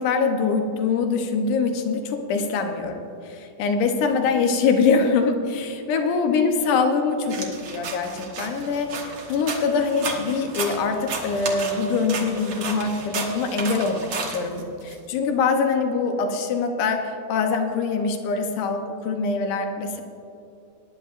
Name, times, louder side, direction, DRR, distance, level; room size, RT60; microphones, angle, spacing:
voice 1, 0.0-20.0, left 4 dB, 70° left, 4 dB, 2.1 m, -24 dB
sound 1, 7.3-15.0, right 4 dB, 80° right, 1.2 m, -33 dB
20.5 x 10.5 x 2.5 m, 2.8 s
omnidirectional pair, 4.5 m